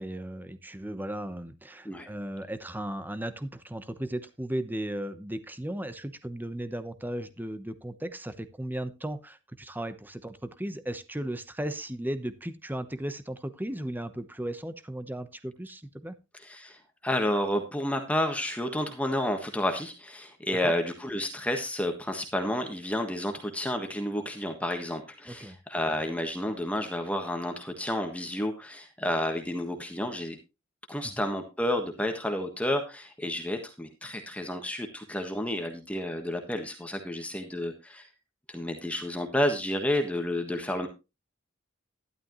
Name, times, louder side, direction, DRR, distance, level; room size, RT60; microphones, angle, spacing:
voice 1, 0.0-16.1 20.6-20.7 25.3-25.6 31.0-31.1, right 1 dB, 10° right, 11 dB, 0.9 m, -36 dB
voice 2, 16.4-30.4 30.9-38.1 38.5-40.9, left 1 dB, 5° left, 4 dB, 1.4 m, -30 dB
12.5 x 11.5 x 3.1 m, 0.27 s
head